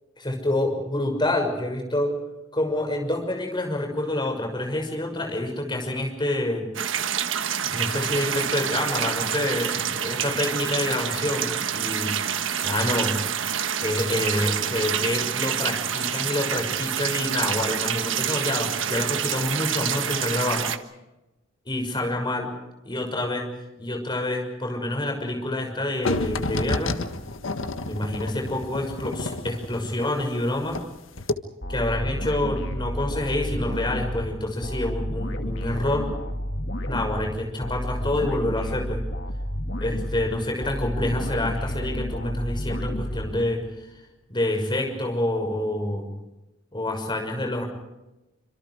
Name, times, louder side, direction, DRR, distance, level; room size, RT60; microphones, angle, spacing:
voice 1, 0.2-2.1 2.5-6.7 7.7-12.1 12.6-13.2 13.8-20.7 21.7-22.5 22.8-23.5 23.8-27.0 27.8-30.8 31.7-36.1 36.9-39.0 39.8-43.9 44.3-46.1 46.7-47.6, left 1 dB, 25° left, 3 dB, 6.3 m, -27 dB
sound 1, 6.7-20.8, right 8 dB, 75° right, 1.4 m, -27 dB
sound 2, 26.0-30.9 31.2-31.3, left 2 dB, 90° left, 1.5 m, -30 dB
sound 3, 31.6-43.9, equal, 65° left, 3.0 m, -31 dB
27.5 x 26.5 x 4.9 m, 0.99 s
head